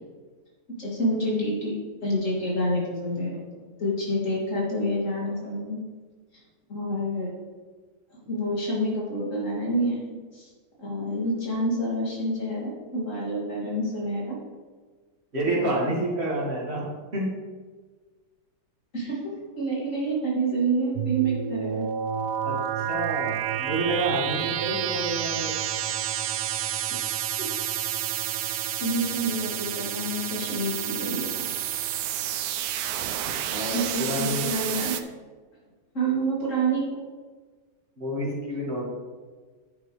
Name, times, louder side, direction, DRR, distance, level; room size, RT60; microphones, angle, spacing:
voice 1, 0.7-1.8 2.0-3.4 3.8-5.8 6.7-7.3 8.2-10.5 10.8-14.4 15.4-15.9 18.9-21.9 26.6-26.7 27.4-27.5 28.5-31.5 33.7-35.0 35.9-37.0, right 1 dB, 45° left, -5 dB, 3.2 m, -28 dB
voice 2, 15.3-17.3 21.2-21.3 22.4-25.6 33.3-34.5 38.0-38.8, right 1 dB, 35° right, -4 dB, 2.5 m, -29 dB
sound 1, 21.0-35.0, right 10 dB, 75° right, 1.2 m, -30 dB
10.5 x 8.1 x 3.3 m, 1.4 s
omnidirectional pair, 1.8 m